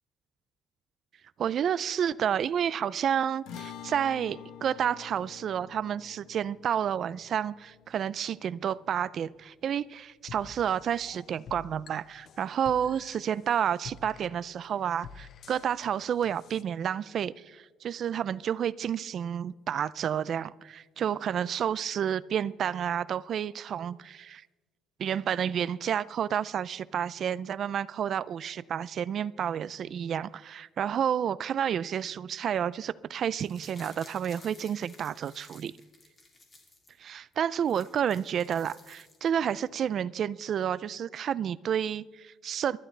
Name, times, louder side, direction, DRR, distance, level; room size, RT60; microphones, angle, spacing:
voice 1, 1.4-24.4 25.0-35.7 37.0-42.8, right 9 dB, 45° right, 0.3 m, -30 dB
sound 1, 3.5-10.0, left 8 dB, 70° left, 1.1 m, -48 dB
sound 2, 10.3-16.6, left 6 dB, 45° left, 0.7 m, -50 dB
sound 3, 33.2-36.9 37.3-37.4 37.6-39.5 39.8-39.9, left 2 dB, 20° left, 2.8 m, -54 dB
24.5 x 11.5 x 3.3 m
cardioid pair, 160°, 0 cm